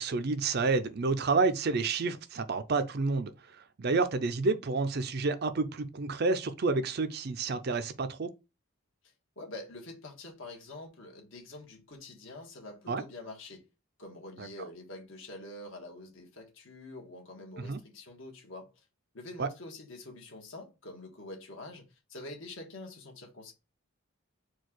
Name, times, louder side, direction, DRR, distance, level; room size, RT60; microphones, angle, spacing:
voice 1, 0.0-3.3 3.8-8.3 12.9-13.0 14.4-14.5 17.7-17.8 19.4-19.5, right 3 dB, 50° right, 0.5 m, -29 dB
voice 2, 9.4-13.6 14.0-18.8 19.1-23.5, left 2 dB, 65° left, 1.5 m, -46 dB
4.5 x 2.4 x 4.4 m
head